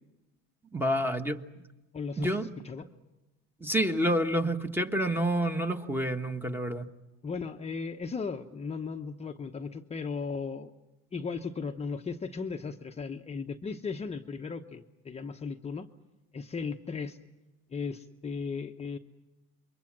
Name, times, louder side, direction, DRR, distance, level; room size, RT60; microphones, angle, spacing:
voice 1, 0.7-1.4 2.2-2.5 3.6-6.9, right 1 dB, 5° right, 7 dB, 1.3 m, -28 dB
voice 2, 1.9-2.9 7.2-10.7 11.1-15.9 16.3-17.2 17.7-19.0, left 5 dB, 20° left, 3 dB, 0.9 m, -36 dB
28.0 x 23.0 x 7.4 m, 1.0 s
supercardioid pair, 120°, 34 cm